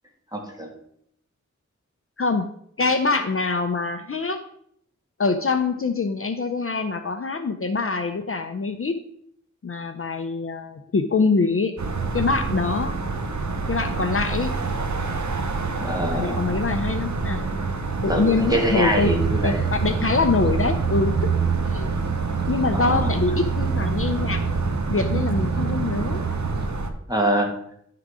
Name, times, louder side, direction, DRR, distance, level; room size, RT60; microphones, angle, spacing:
voice 1, 0.3-0.7 15.8-16.4 18.1-19.6 22.7-23.1 27.1-27.5, right 1 dB, 10° right, 0 dB, 2.1 m, -24 dB
voice 2, 2.2-2.5 2.8-4.4 5.2-9.0 9.6-11.8 12.1-12.9 13.7-14.5 16.1-17.4 18.0-19.1 19.4-21.9 22.5-24.4 24.9-26.3, left 4 dB, 45° left, 7 dB, 0.6 m, -24 dB
sound 1, 11.8-26.9, right 3 dB, 70° right, 0.9 m, -28 dB
sound 2, 19.0-26.7, right 6 dB, 35° right, 0.7 m, -27 dB
11.0 x 3.8 x 4.8 m, 0.70 s
wide cardioid pair, 55°, 30 cm